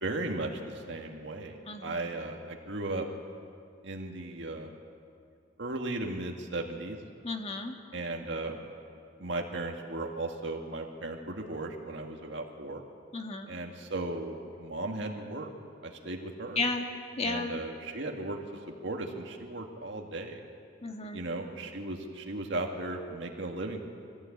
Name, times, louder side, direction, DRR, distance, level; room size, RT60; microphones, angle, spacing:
voice 1, 0.0-3.1 3.8-4.7 5.6-7.0 7.9-8.6 9.2-12.8 13.5-15.5 15.8-16.6 17.2-18.4 18.7-20.4 21.1-23.8, right 2 dB, 65° right, 2 dB, 1.9 m, -36 dB
voice 2, 1.7-2.0 7.2-7.7 13.1-13.5 16.5-16.8 17.2-17.6 20.8-21.2, left 3 dB, 35° left, 4 dB, 1.7 m, -33 dB
23.5 x 15.5 x 8.6 m, 2.3 s
head